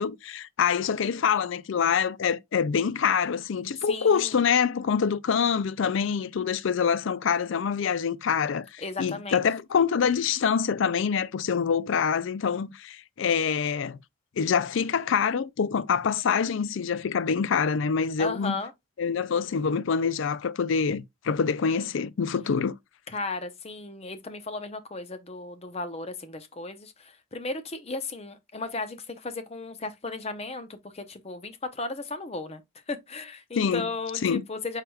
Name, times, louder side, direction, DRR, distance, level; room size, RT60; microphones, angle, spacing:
voice 1, 0.0-14.0 14.4-18.6 19.0-22.7 33.6-33.8 34.2-34.4, left 6 dB, 65° left, 0.4 m, -25 dB
voice 2, 3.8-4.4 8.8-9.4 18.2-18.7 23.1-32.6 32.9-34.8, left 3 dB, 30° left, 0.7 m, -35 dB
4.7 x 4.7 x 2.3 m
head